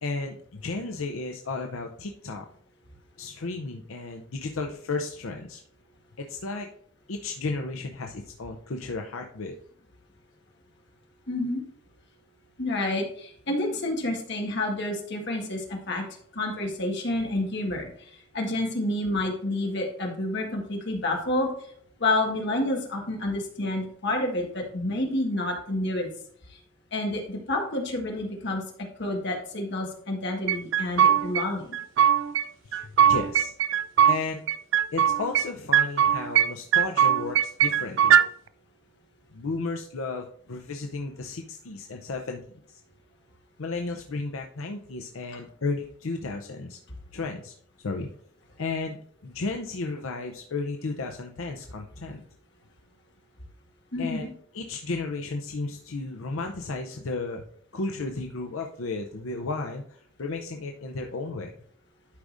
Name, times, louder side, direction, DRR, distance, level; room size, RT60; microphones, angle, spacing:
voice 1, 0.0-2.5 3.2-5.6 6.2-6.7 7.1-9.5 32.7-33.5 34.1-34.4 34.9-38.2 39.3-42.4 42.7-42.8 43.6-46.8 47.1-48.1 48.6-52.2 54.0-54.3 54.5-57.4 57.7-61.5, left 3 dB, 80° left, 3 dB, 0.6 m, -33 dB
voice 2, 11.3-11.6 12.6-16.0 16.3-21.5 22.0-26.1 26.9-28.6 29.0-31.8 53.9-54.3, left 1 dB, 55° left, 1 dB, 1.7 m, -29 dB
sound 1, 30.5-31.4 31.7-32.5 32.7-34.2 34.5-35.5 35.7-36.5 36.7-38.3, right 9 dB, 60° right, 0.4 m, -20 dB
11.5 x 4.9 x 2.6 m, 0.62 s
head